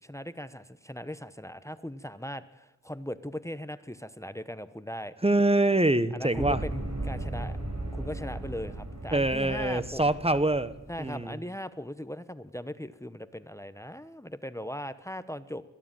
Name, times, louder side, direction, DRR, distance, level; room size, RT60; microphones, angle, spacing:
voice 1, 0.0-5.1 6.1-7.6 7.9-10.2 10.9-15.7, equal, 10° left, 13 dB, 1.0 m, -39 dB
voice 2, 5.2-6.6 9.1-10.7 11.0-11.4, right 2 dB, 20° right, 14 dB, 1.1 m, -25 dB
sound 1, 6.3-11.1, right 2 dB, 60° right, 5.8 m, -36 dB
22.0 x 15.5 x 9.0 m, 0.98 s
cardioid pair, 50°, 31 cm